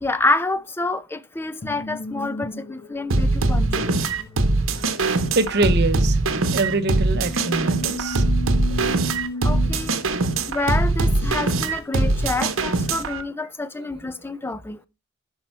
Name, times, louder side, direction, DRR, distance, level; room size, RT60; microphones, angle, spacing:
voice 1, 0.0-4.1 9.4-10.0 10.5-14.8, left 2 dB, 10° left, 0.4 m, -27 dB
sound 1, 1.6-12.4, left 1 dB, 55° left, 1.0 m, -36 dB
sound 2, 3.1-13.2, right 2 dB, 85° right, 0.9 m, -22 dB
voice 2, 4.7-6.2 6.5-8.2 13.8-13.9, right 2 dB, 55° right, 0.8 m, -25 dB
10.0 x 5.5 x 4.4 m
head